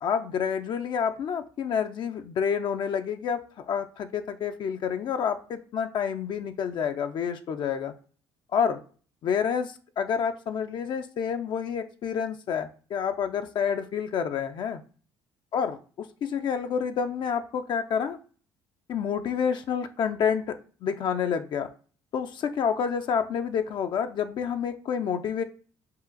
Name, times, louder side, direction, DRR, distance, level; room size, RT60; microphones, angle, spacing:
voice 1, 0.0-7.9 8.5-8.8 9.2-14.8 15.5-18.2 18.9-20.6 20.8-21.7 22.1-25.4, left 7 dB, 55° left, 7 dB, 0.4 m, -28 dB
5.6 x 2.4 x 3.8 m, 0.40 s
supercardioid pair, 85°, 9 cm